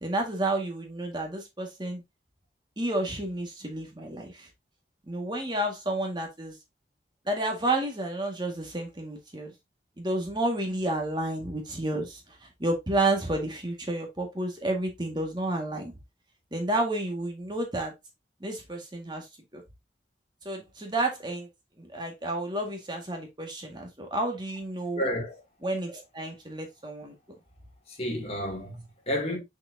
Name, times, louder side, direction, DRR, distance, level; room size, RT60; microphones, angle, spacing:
voice 1, 0.0-2.0 2.8-4.5 5.1-6.5 7.3-9.5 10.0-12.2 12.6-15.9 16.5-17.9 18.4-19.3 19.5-19.6 20.5-21.5 21.8-25.0 25.6-27.1, right 2 dB, 25° right, 1.8 m, -30 dB
voice 2, 25.0-25.4 28.0-29.4, equal, 35° left, 2.5 m, -31 dB
6.5 x 6.0 x 2.7 m
head